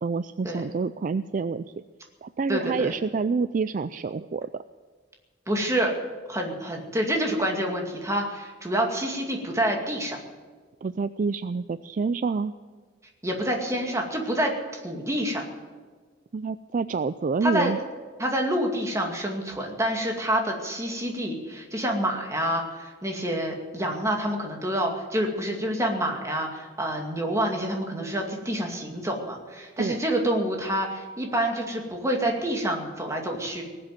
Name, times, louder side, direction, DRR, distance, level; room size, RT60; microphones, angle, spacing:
voice 1, 0.0-1.7 2.2-4.6 10.8-12.5 16.3-17.8 29.8-30.0, right 4 dB, 45° right, 13 dB, 0.4 m, -27 dB
voice 2, 2.5-2.9 5.5-5.9 6.3-10.2 13.2-15.4 17.4-17.7 18.2-33.6, right 1 dB, 15° right, 1 dB, 2.3 m, -27 dB
19.0 x 7.7 x 9.1 m, 1.4 s
head